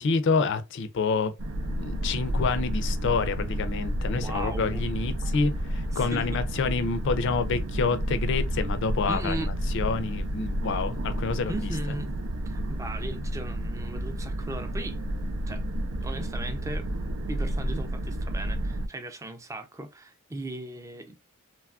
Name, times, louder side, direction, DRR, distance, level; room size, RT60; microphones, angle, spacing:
voice 1, 0.0-1.3 1.6-9.4 9.7-11.7, left 4 dB, 60° left, 0.4 m, -28 dB
sound 1, 1.4-18.9, equal, 80° right, 0.5 m, -31 dB
voice 2, 4.1-4.8 5.9-6.3 9.1-9.5 11.4-12.1 12.5-15.0 15.5-15.7 16.0-16.9 17.3-21.2, right 2 dB, 15° right, 0.4 m, -37 dB
3.1 x 2.3 x 2.3 m
head